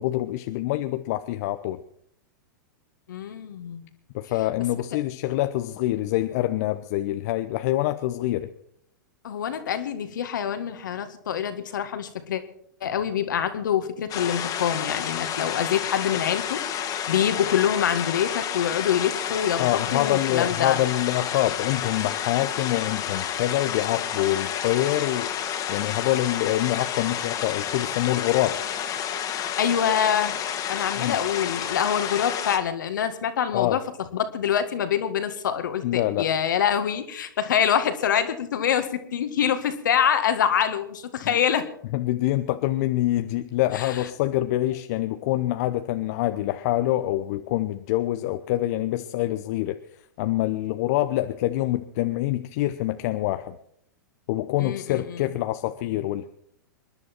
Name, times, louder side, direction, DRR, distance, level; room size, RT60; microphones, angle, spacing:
voice 1, 0.0-1.8 4.1-8.5 19.6-25.3 25.7-28.6 31.0-31.2 33.5-33.8 35.8-36.3 41.2-41.4 41.9-49.8 50.2-53.6 54.3-56.3, left 15 dB, 50° left, 9 dB, 0.8 m, -25 dB
voice 2, 3.1-3.9 9.2-12.4 12.8-20.8 29.3-30.4 30.7-33.8 34.1-41.7 43.7-44.0 54.6-55.2, left 8 dB, 70° left, 9 dB, 1.9 m, -25 dB
sound 1, 14.1-32.6, left 9 dB, 35° left, 2.1 m, -30 dB
27.0 x 11.0 x 4.5 m, 0.69 s
hypercardioid pair, 105°, 11 cm